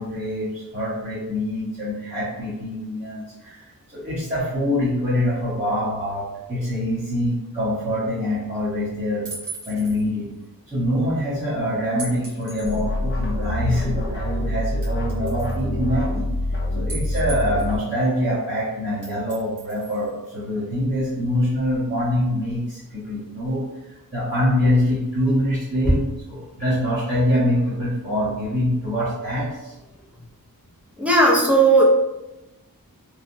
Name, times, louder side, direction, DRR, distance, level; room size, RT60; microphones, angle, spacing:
voice 1, 0.0-9.3 9.7-10.3 10.7-16.3 16.7-29.7, left 1 dB, 20° right, -13 dB, 1.1 m, -24 dB
sound 1, 9.3-10.0 12.0-12.8 13.4-13.5 14.8-15.6 16.9-17.8 19.0-20.1, right 3 dB, 60° right, 1.2 m, -37 dB
sound 2, 12.6-17.8, left 1 dB, 35° left, 0.6 m, -26 dB
voice 2, 31.0-31.8, right 2 dB, 5° right, -4 dB, 0.6 m, -15 dB
3.2 x 2.1 x 2.7 m, 0.98 s
wide cardioid pair, 65°, 36 cm